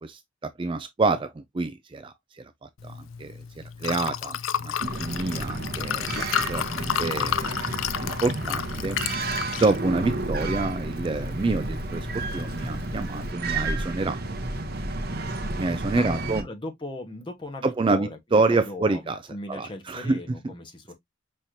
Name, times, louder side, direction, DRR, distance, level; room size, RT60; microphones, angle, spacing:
voice 1, 0.0-7.5 8.0-9.0 9.6-14.2 15.6-16.4 17.6-19.2 19.5-20.2, right 3 dB, 25° right, 0.4 m, -27 dB
Liquid, 2.8-13.3, left 9 dB, 90° left, 0.4 m, -32 dB
sound 1, 4.8-16.4, right 2 dB, 50° right, 0.8 m, -31 dB
voice 2, 15.9-20.9, left 2 dB, 25° left, 1.2 m, -38 dB
5.6 x 3.2 x 2.6 m
head